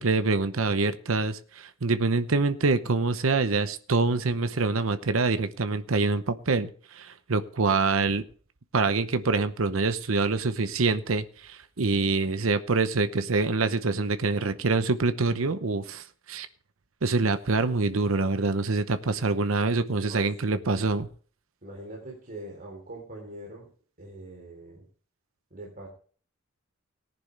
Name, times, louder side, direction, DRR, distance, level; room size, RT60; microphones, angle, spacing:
voice 1, 0.0-8.2 8.7-16.5 17.0-21.1, right 3 dB, 70° right, 0.8 m, -25 dB
voice 2, 20.0-20.9 21.6-23.7 24.0-24.9 25.5-25.9, right 1 dB, 45° right, 3.7 m, -43 dB
18.0 x 10.5 x 3.4 m
head